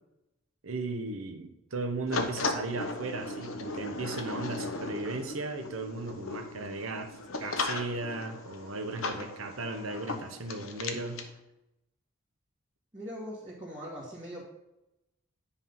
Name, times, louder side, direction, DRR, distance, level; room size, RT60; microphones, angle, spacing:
voice 1, 0.6-11.3, right 3 dB, 85° right, 7 dB, 0.9 m, -36 dB
sound 1, 2.1-11.3, left 3 dB, 80° left, 1.0 m, -37 dB
voice 2, 12.9-14.4, equal, 20° right, -9 dB, 2.0 m, -41 dB
9.8 x 3.7 x 5.5 m, 0.91 s
head